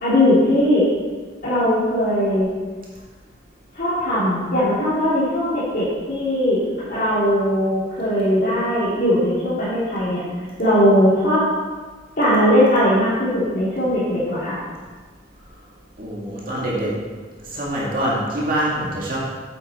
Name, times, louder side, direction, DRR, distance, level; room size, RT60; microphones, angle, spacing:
voice 1, 0.0-0.9 1.4-2.5 3.7-10.2 10.6-11.4 12.2-14.6, equal, 50° left, -13 dB, 3.2 m, -19 dB
voice 2, 16.0-17.0 17.4-19.2, right 1 dB, 45° right, -5 dB, 2.1 m, -24 dB
8.8 x 8.5 x 4.3 m, 1.4 s
head